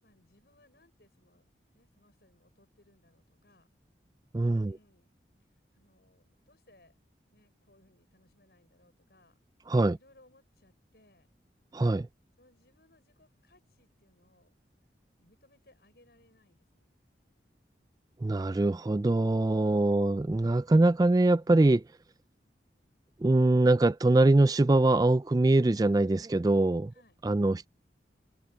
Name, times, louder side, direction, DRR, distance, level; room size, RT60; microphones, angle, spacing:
voice 1, 0.0-3.7 4.6-5.2 5.7-7.0 7.3-9.4 9.9-11.3 12.4-14.6 15.2-16.9 26.9-27.2, left 1 dB, 65° left, 6.6 m, -65 dB
voice 2, 4.3-4.8 9.7-10.0 11.7-12.1 18.2-21.8 23.2-26.9 27.2-27.7, right 2 dB, 20° right, 0.3 m, -23 dB
head